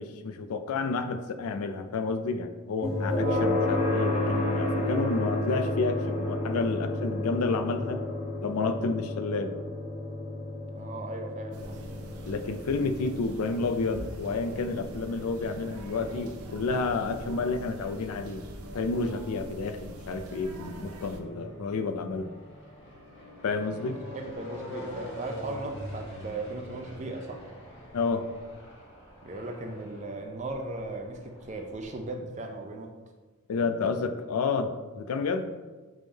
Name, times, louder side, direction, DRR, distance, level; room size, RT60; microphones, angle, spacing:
voice 1, 0.0-8.0 8.4-9.5 12.2-18.4 18.7-22.3 23.4-24.0 27.9-28.2 33.5-35.5, left 4 dB, 85° left, 9 dB, 0.4 m, -30 dB
sound 1, 2.8-17.8, left 1 dB, 25° left, 0.8 m, -31 dB
voice 2, 10.8-11.8 21.3-21.8 23.8-27.5 29.2-32.9, right 2 dB, 30° right, 3 dB, 0.4 m, -37 dB
sound 2, 11.5-21.2, right 1 dB, 80° right, 0.5 m, -44 dB
sound 3, 18.5-32.1, equal, 50° left, 1.2 m, -46 dB
3.7 x 3.3 x 3.9 m, 1.3 s
head